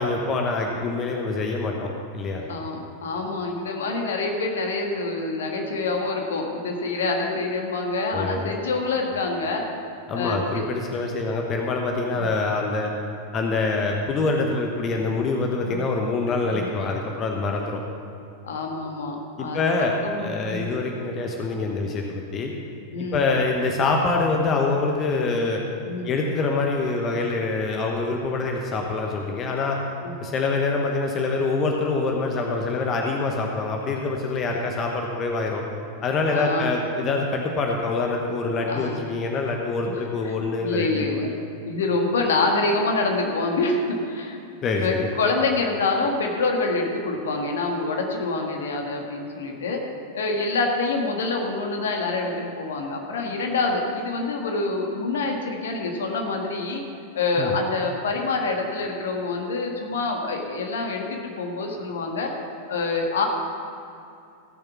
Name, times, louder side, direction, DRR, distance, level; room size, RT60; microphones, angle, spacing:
voice 1, 0.0-2.5 8.1-8.5 10.1-12.9 13.3-17.8 19.4-19.9 20.2-22.5 23.0-25.6 26.0-29.8 30.2-35.6 36.0-41.2 44.6-45.1 57.4-57.5, left 3 dB, 30° left, 1 dB, 1.1 m, -25 dB
voice 2, 2.5-9.7 10.1-10.6 12.1-12.3 15.7-15.8 16.5-16.7 18.4-20.7 22.9-23.3 25.8-26.1 30.0-30.2 36.3-36.7 38.7-39.0 39.9-40.3 40.6-41.3 41.7-44.4 44.8-56.8 57.1-62.3 62.7-63.3, left 3 dB, 60° left, 2 dB, 1.6 m, -26 dB
16.0 x 6.9 x 5.9 m, 2.5 s
figure-of-eight pair, 90°, 0 cm